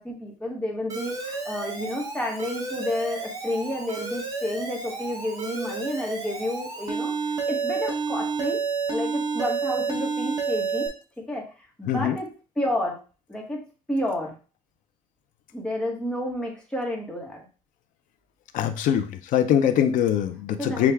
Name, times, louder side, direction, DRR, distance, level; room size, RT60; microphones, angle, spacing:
voice 1, 0.0-8.6 8.9-10.9 11.3-13.0 13.3-14.4 15.5-17.4 20.6-20.9, left 1 dB, 5° left, -1 dB, 1.0 m, -30 dB
Alarm, 0.9-10.9, right 5 dB, 25° right, 0.9 m, -30 dB
voice 2, 18.5-20.9, left 9 dB, 80° left, 8 dB, 0.5 m, -22 dB
5.8 x 2.3 x 3.4 m, 0.35 s
cardioid pair, 170°, 13 cm